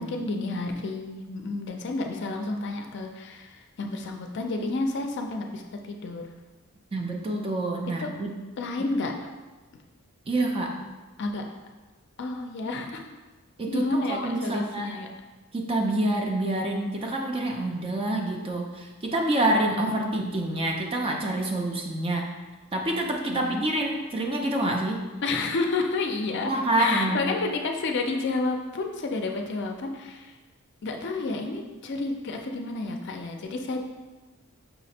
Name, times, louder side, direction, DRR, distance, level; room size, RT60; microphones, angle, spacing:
voice 1, 0.0-6.2 8.0-8.1 8.6-9.1 11.2-11.4 12.2-13.0 13.7-15.1 19.7-20.1 23.3-23.6 25.2-26.5 26.8-30.3 30.8-33.8, left 3 dB, 55° left, 3 dB, 0.4 m, -30 dB
voice 2, 6.9-8.3 10.3-10.8 13.6-15.0 15.5-22.3 22.7-25.1 26.4-27.2, right 1 dB, 25° right, 1 dB, 0.4 m, -27 dB
5.6 x 2.1 x 4.2 m, 1.2 s
head